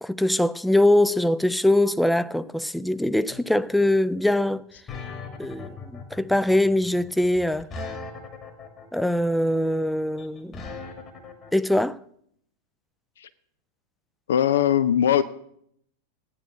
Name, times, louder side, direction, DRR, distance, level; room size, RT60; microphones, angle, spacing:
voice 1, 0.0-4.6 5.4-7.7 8.9-10.7 11.5-12.0, left 1 dB, ahead, 0.4 m, -22 dB
sound 1, 3.3-11.5, left 4 dB, 30° left, 2.1 m, -39 dB
voice 2, 14.3-15.2, left 10 dB, 60° left, 0.4 m, -20 dB
11.0 x 9.0 x 6.5 m
figure-of-eight pair, 90°, 0 cm